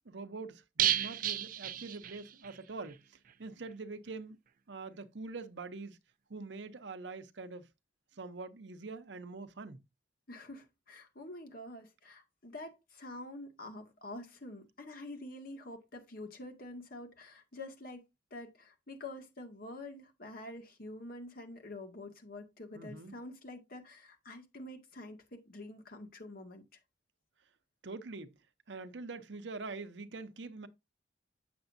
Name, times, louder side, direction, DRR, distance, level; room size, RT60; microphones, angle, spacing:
voice 1, 0.0-4.4 4.7-6.0 6.3-7.7 8.1-9.8 22.7-23.2 27.8-28.4 28.7-30.7, right 3 dB, 75° right, 0.8 m, -44 dB
sound 1, 0.8-2.6 2.8-2.9 3.3-3.4, right 11 dB, 50° right, 0.4 m, -32 dB
voice 2, 10.3-18.0 18.3-26.6, left 2 dB, 55° left, 1.8 m, -47 dB
7.9 x 6.9 x 2.6 m
head